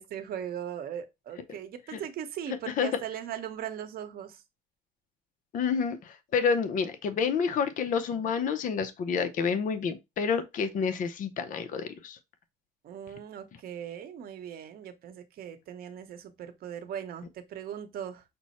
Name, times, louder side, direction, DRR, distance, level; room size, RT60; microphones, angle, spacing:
voice 1, 0.0-4.4 12.8-18.2, right 9 dB, 60° right, 0.9 m, -39 dB
voice 2, 5.5-12.2, left 6 dB, 50° left, 0.6 m, -29 dB
6.0 x 2.1 x 4.1 m
cardioid pair, 110°, 17 cm